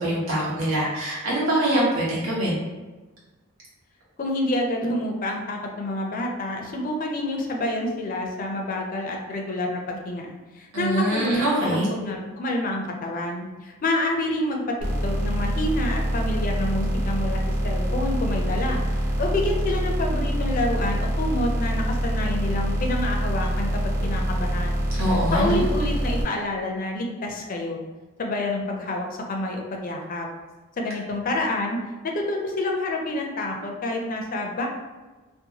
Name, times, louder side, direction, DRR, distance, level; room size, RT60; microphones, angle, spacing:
voice 1, 0.0-2.6 10.7-11.9 25.0-25.6, right 1 dB, 85° right, -7 dB, 1.1 m, -24 dB
voice 2, 4.2-27.8 28.2-30.3 30.8-31.8 32.3-34.7, left 1 dB, 40° left, 1 dB, 0.4 m, -28 dB
sound 1, 14.8-26.2, equal, 40° right, 0.7 m, -25 dB
2.6 x 2.2 x 2.8 m, 1.2 s
head